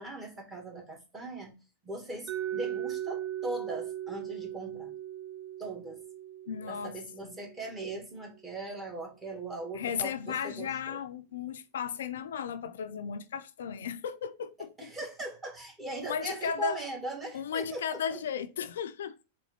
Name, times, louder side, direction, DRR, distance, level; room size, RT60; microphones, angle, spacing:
voice 1, 0.0-1.6 1.8-5.0 5.6-6.0 6.6-11.0 14.8-18.2, right 2 dB, 20° right, 1.9 m, -40 dB
Mallet percussion, 2.3-8.1, right 12 dB, 35° right, 0.5 m, -38 dB
voice 2, 6.5-7.0 7.2-7.3 9.7-14.9 16.0-16.8 17.3-19.2, left 7 dB, 70° left, 0.4 m, -35 dB
4.1 x 3.1 x 3.0 m
hypercardioid pair, 100°, 0 cm